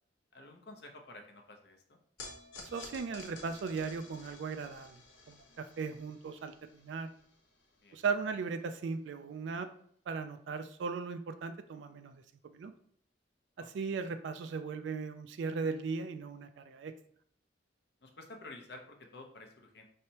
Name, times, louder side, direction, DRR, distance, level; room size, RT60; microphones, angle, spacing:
voice 1, 0.3-2.0 7.8-8.0 13.6-13.9 18.0-19.8, left 2 dB, 60° left, 3 dB, 0.8 m, -51 dB
sound 1, 2.2-8.6, left 3 dB, 85° left, 1.0 m, -53 dB
voice 2, 2.6-5.0 5.3-7.1 7.9-9.7 10.1-12.2 12.5-12.7 13.6-16.9, right 5 dB, 80° right, 9 dB, 0.3 m, -37 dB
5.3 x 3.3 x 2.8 m, 0.63 s
head